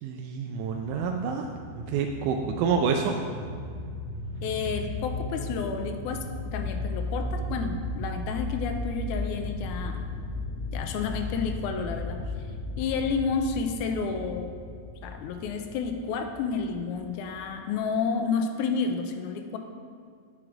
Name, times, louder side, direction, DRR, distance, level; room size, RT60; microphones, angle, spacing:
voice 1, 0.0-3.2, right 6 dB, 90° right, 3 dB, 2.1 m, -28 dB
sound 1, 0.6-17.6, left 2 dB, 70° left, 2.0 m, -36 dB
voice 2, 4.4-10.1 10.7-12.2 12.8-14.5 15.0-19.6, left 5 dB, 90° left, 6 dB, 2.1 m, -30 dB
8.8 x 6.2 x 4.7 m, 2.2 s
omnidirectional pair, 3.5 m